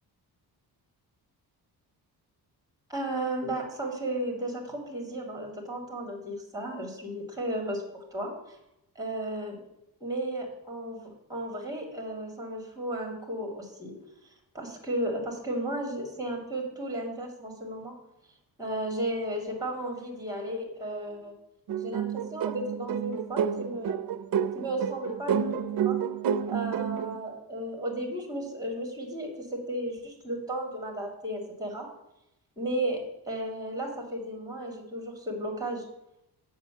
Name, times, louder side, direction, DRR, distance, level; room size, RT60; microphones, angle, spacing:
voice 1, 2.9-8.6 9.0-9.6 10.0-13.9 14.5-17.9 18.6-21.3 21.8-24.0 24.5-26.0 26.5-31.9 32.6-33.0 33.3-35.8, right 1 dB, 10° right, 2 dB, 2.2 m, -34 dB
sound 1, 21.7-27.2, right 8 dB, 60° right, 0.5 m, -29 dB
7.3 x 5.7 x 7.5 m, 0.87 s
wide cardioid pair, 170°, 39 cm